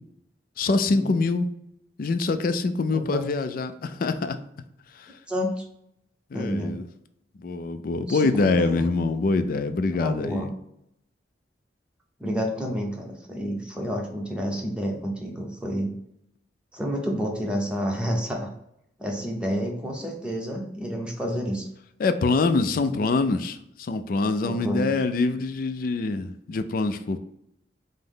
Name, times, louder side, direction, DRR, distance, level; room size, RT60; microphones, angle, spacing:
voice 1, 0.6-1.5 2.0-4.4 6.3-6.9 7.4-10.5 22.0-27.2, left 3 dB, 50° left, 10 dB, 0.4 m, -24 dB
voice 2, 2.9-3.2 5.3-5.6 6.3-6.7 8.1-8.9 10.0-10.5 12.2-15.9 16.7-18.5 19.0-21.7 24.4-25.0, equal, 5° right, 0 dB, 0.8 m, -29 dB
5.4 x 2.0 x 3.6 m, 0.76 s
head